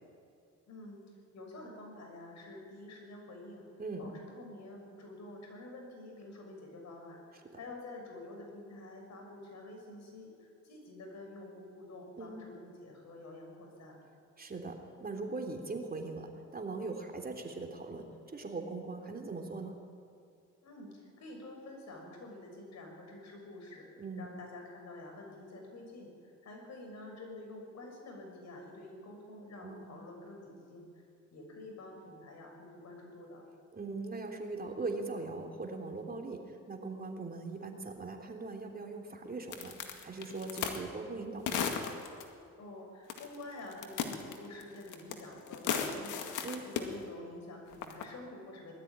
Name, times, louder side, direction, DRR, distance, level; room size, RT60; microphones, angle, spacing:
voice 1, 0.7-1.0 1.3-3.7 4.0-14.0 20.6-23.9 24.2-31.0 31.3-33.4 42.6-48.7, left 2 dB, 60° left, 1 dB, 6.5 m, -48 dB
voice 2, 3.8-4.1 12.2-12.4 14.4-19.8 24.0-24.3 29.6-30.0 33.7-41.6 46.4-46.6, right 3 dB, 30° right, 2 dB, 3.2 m, -40 dB
sound 1, 39.5-40.8 41.5-42.2 43.1-43.4 43.7-45.2 45.5-46.9 47.7-48.0, left 7 dB, 85° left, 2.0 m, -35 dB
20.5 x 13.0 x 9.8 m, 2.4 s
cardioid pair, 90°, 30 cm